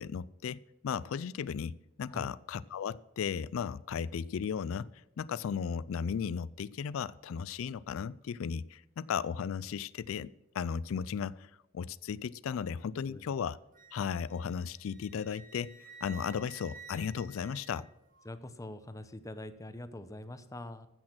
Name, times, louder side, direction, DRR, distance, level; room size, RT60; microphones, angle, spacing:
voice 1, 0.0-4.9 5.2-10.3 10.5-13.6 13.9-17.8, left 7 dB, 90° left, 19 dB, 0.4 m, -35 dB
Wind instrument woodwind instrument, 13.7-18.3, right 5 dB, 40° right, 1.6 m, -53 dB
voice 2, 18.2-20.9, left 1 dB, 15° left, 11 dB, 0.7 m, -44 dB
14.5 x 6.3 x 6.0 m, 0.90 s
head